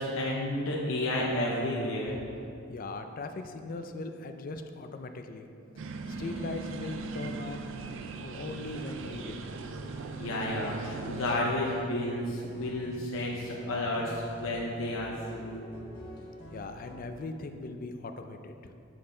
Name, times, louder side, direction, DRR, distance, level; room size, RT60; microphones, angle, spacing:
voice 1, 0.0-2.2 9.7-15.6, left 1 dB, 70° left, -3 dB, 0.8 m, -32 dB
voice 2, 2.7-5.5 6.1-7.7 8.0-9.5 16.5-18.7, left 2 dB, 45° left, 7 dB, 0.4 m, -39 dB
sound 1, 5.8-11.3, right 4 dB, 65° right, 0.4 m, -39 dB
sound 2, 10.7-17.0, left 1 dB, 25° left, 1.7 m, -47 dB
7.7 x 5.8 x 3.8 m, 2.7 s
head